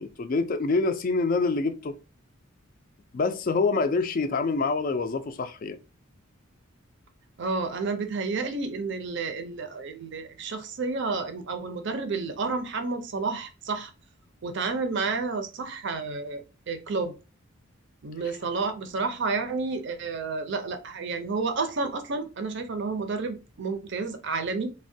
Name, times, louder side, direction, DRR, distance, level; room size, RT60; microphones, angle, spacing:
voice 1, 0.0-1.9 3.1-5.8, left 3 dB, 40° left, 0.3 m, -26 dB
voice 2, 7.4-13.9 14.4-17.1 18.0-24.7, right 4 dB, 55° right, 0.5 m, -30 dB
3.3 x 2.2 x 2.6 m
head